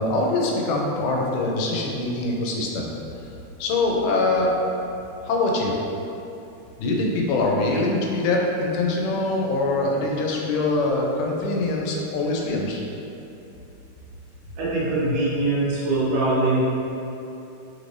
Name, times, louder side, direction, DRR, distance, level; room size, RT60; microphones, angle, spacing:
voice 1, 0.0-2.9 3.6-4.5 5.3-5.8 6.8-12.8, left 2 dB, 90° left, -1 dB, 2.2 m, -23 dB
voice 2, 14.6-16.6, right 2 dB, 90° right, -7 dB, 2.6 m, -22 dB
5.5 x 3.3 x 2.6 m, 2.9 s
omnidirectional pair, 3.6 m